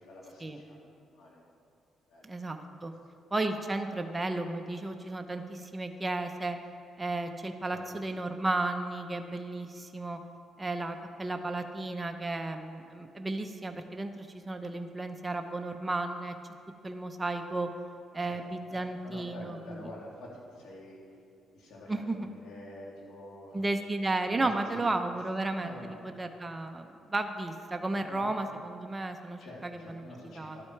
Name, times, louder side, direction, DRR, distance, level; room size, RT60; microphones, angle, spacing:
voice 1, 0.0-1.4 2.1-2.4 7.6-7.8 18.2-18.4 18.7-21.0 21.5-23.6 24.4-24.8 25.6-26.0 28.1-28.3 29.4-30.6, left 1 dB, 80° left, -3 dB, 2.7 m, -47 dB
voice 2, 2.2-2.9 3.3-6.6 7.0-10.2 10.6-16.3 16.8-17.7 18.1-19.8 21.9-22.3 23.5-30.1 30.4-30.6, right 2 dB, 20° right, 5 dB, 0.7 m, -33 dB
12.0 x 8.7 x 4.6 m, 2.5 s
cardioid pair, 90°, 0 cm